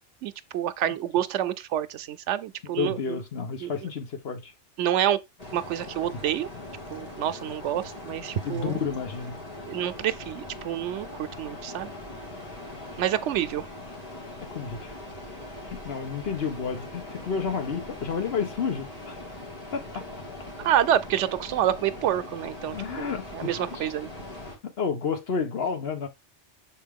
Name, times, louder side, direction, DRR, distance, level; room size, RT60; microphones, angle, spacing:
voice 1, 0.2-3.2 3.6-3.9 4.8-5.2 5.5-6.5 6.9-8.8 9.7-11.9 13.0-13.6 20.6-24.1, right 11 dB, 90° right, 0.9 m, -28 dB
voice 2, 2.7-4.5 8.4-9.4 14.5-15.0 15.6-19.2 19.7-20.1 22.7-23.9 24.6-26.1, left 6 dB, 60° left, 1.2 m, -31 dB
sound 1, 5.4-24.6, left 1 dB, 30° left, 2.3 m, -41 dB
6.7 x 4.2 x 3.5 m
omnidirectional pair, 1.2 m